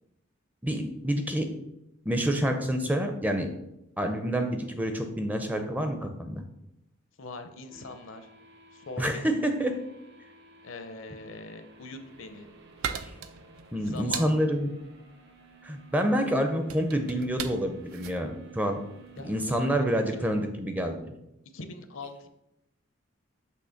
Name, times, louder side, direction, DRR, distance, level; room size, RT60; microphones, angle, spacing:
voice 1, 0.6-1.5 2.1-3.5 4.0-6.4 9.0-9.7 13.7-14.7 15.6-18.8 19.2-21.0, equal, 10° right, 5 dB, 0.5 m, -28 dB
voice 2, 7.2-8.3 8.7-9.4 10.6-12.5 13.8-14.3 19.2-19.7 20.1-20.2 21.5-22.3, left 3 dB, 65° left, 8 dB, 0.6 m, -42 dB
sound 1, 7.7-20.2, right 4 dB, 55° right, 0.8 m, -54 dB
sound 2, 11.9-19.4, right 7 dB, 80° right, 0.5 m, -40 dB
6.4 x 2.9 x 5.7 m, 0.85 s
head